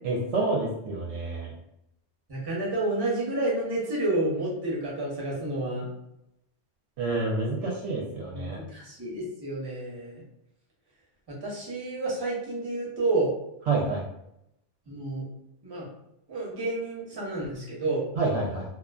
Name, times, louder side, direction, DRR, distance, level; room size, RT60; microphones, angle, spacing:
voice 1, 0.0-1.5 7.0-8.6 13.7-14.0 18.2-18.6, right 3 dB, 70° right, -3 dB, 0.8 m, -28 dB
voice 2, 2.3-5.9 8.3-10.2 11.3-13.3 14.9-15.2 15.6-15.9 16.3-18.0, right 2 dB, 25° right, -5 dB, 0.7 m, -30 dB
2.4 x 2.3 x 2.3 m, 0.82 s
omnidirectional pair, 1.2 m